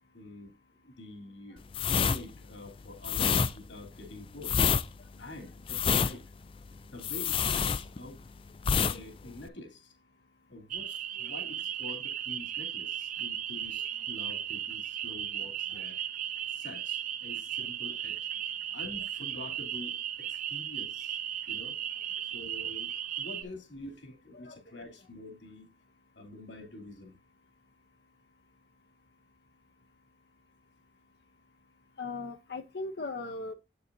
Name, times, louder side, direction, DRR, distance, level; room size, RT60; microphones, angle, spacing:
voice 1, 0.1-0.6 0.8-4.6 5.2-6.3 6.9-8.2 8.9-9.9 10.5-16.0 16.5-18.3 18.7-21.2 21.5-21.8 22.3-25.7 26.2-27.2, left 2 dB, 85° left, 2.7 m, -46 dB
sound 1, 1.7-8.3 8.6-9.0 9.2-9.5, left 6 dB, 30° left, 0.3 m, -27 dB
sound 2, 10.7-23.4, right 10 dB, 45° right, 0.5 m, -36 dB
voice 2, 32.0-33.5, left 3 dB, 60° left, 0.7 m, -38 dB
8.7 x 6.8 x 2.6 m
head